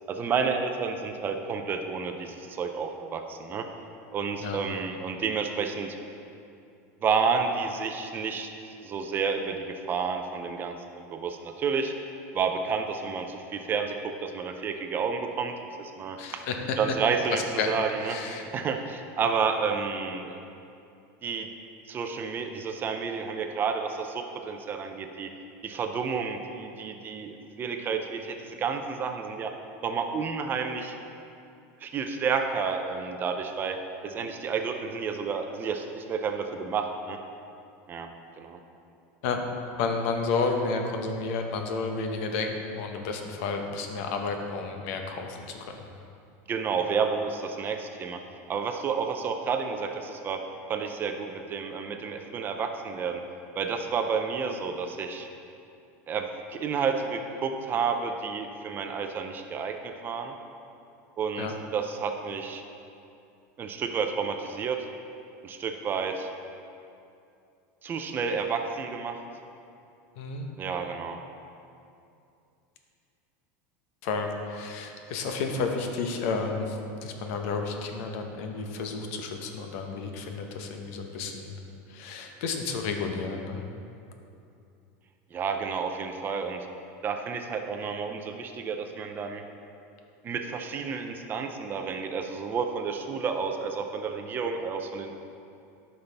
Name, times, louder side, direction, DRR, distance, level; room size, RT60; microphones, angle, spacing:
voice 1, 0.1-3.7 4.1-6.0 7.0-8.5 8.8-11.9 12.3-15.5 15.8-16.4 16.8-20.4 21.2-21.5 21.9-25.3 25.6-29.5 29.8-30.9 31.8-33.8 34.0-37.2 37.9-38.1 38.4-38.6 46.5-48.2 48.5-50.4 50.7-53.2 53.6-55.3 56.1-60.3 61.2-62.6 63.6-64.8 65.4-66.3 67.8-69.2 70.6-71.2 85.3-86.7 87.0-89.4 90.2-95.1, right 5 dB, 25° right, 5 dB, 0.5 m, -30 dB
voice 2, 16.2-16.8 17.3-17.7 18.0-18.5 39.2-39.4 39.8-45.8 61.4-61.5 70.2-70.5 74.0-81.5 81.9-83.7, left 4 dB, 65° left, 4 dB, 0.8 m, -31 dB
9.8 x 5.5 x 3.4 m, 2.6 s
supercardioid pair, 150°, 8 cm